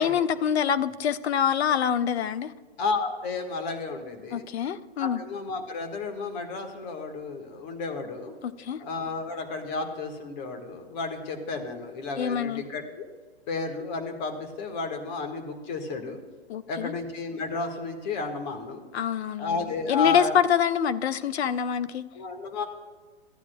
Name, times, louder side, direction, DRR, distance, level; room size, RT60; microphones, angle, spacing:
voice 1, 0.0-2.5 4.3-5.2 8.6-8.8 12.2-12.6 16.5-16.9 18.9-22.0, left 8 dB, 75° left, 14 dB, 0.6 m, -25 dB
voice 2, 2.8-4.5 5.0-8.3 8.8-13.1 13.5-16.2 16.7-18.8 19.4-20.4 22.1-22.6, left 4 dB, 40° left, 5 dB, 1.6 m, -32 dB
15.0 x 9.4 x 2.3 m, 1.5 s
hypercardioid pair, 130°, 33 cm